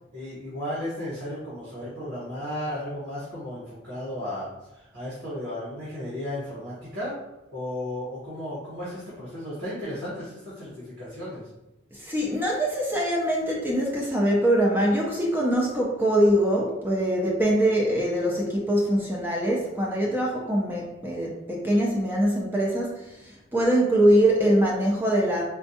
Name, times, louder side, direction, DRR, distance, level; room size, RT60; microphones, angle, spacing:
voice 1, 0.1-7.1 7.5-11.5, left 1 dB, 80° right, -8 dB, 1.2 m, -34 dB
voice 2, 11.9-25.4, right 1 dB, 10° right, -3 dB, 0.4 m, -23 dB
4.3 x 2.3 x 2.7 m, 0.93 s
head